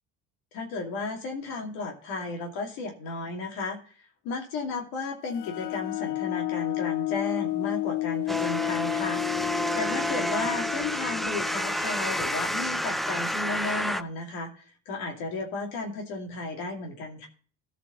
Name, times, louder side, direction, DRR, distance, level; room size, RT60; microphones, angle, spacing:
voice 1, 0.5-3.8 4.2-9.2 9.7-14.5 14.9-17.3, left 3 dB, 75° left, 1 dB, 2.7 m, -34 dB
sound 1, 5.3-12.8, left 18 dB, 60° left, 0.7 m, -32 dB
sound 2, 8.3-14.0, equal, ahead, 0.4 m, -29 dB
14.5 x 5.3 x 5.4 m, 0.42 s
supercardioid pair, 85°, 36 cm